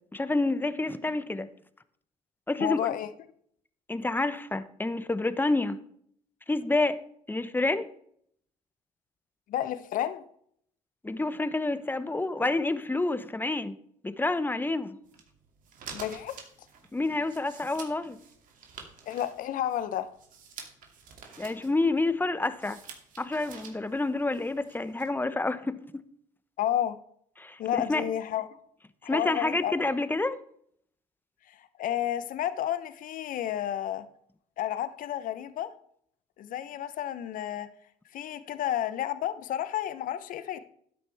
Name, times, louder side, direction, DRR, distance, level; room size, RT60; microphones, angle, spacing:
voice 1, 0.1-1.5 2.5-2.8 3.9-5.8 6.5-7.0 7.3-7.9 11.0-13.8 14.0-15.0 16.9-18.2 21.4-22.8 23.2-26.0 27.4-28.1 29.1-30.4, left 2 dB, 15° left, 1.0 m, -28 dB
voice 2, 2.6-3.1 9.5-10.2 15.9-16.3 19.1-20.1 26.6-27.0 27.6-28.5 29.0-29.7 31.5-34.1 34.6-35.7 36.4-37.7 38.1-40.6, left 11 dB, 65° left, 0.9 m, -31 dB
sound 1, 15.0-25.1, right 6 dB, 60° right, 2.6 m, -49 dB
12.5 x 9.1 x 3.5 m
supercardioid pair, 65°, 15 cm